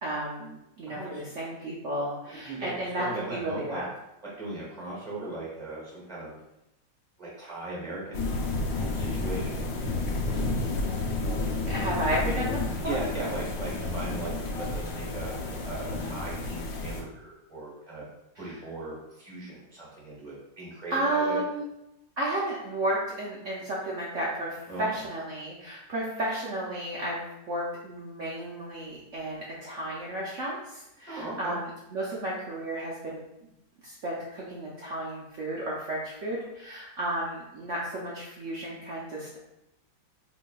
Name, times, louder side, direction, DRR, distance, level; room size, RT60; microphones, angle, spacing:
voice 1, 0.0-3.9 11.7-13.0 18.4-18.5 20.9-21.7 22.2-33.2 33.8-39.4, right 1 dB, 70° right, -5 dB, 0.7 m, -33 dB
voice 2, 0.8-1.5 2.2-3.8 4.2-6.4 7.2-8.3 8.9-9.7 12.8-18.0 18.4-21.4 24.7-24.9 31.1-31.5, right 2 dB, 30° right, -5 dB, 0.8 m, -38 dB
sound 1, 8.1-17.0, left 3 dB, 80° left, 1.3 m, -31 dB
4.3 x 3.0 x 2.3 m, 0.88 s
omnidirectional pair, 2.0 m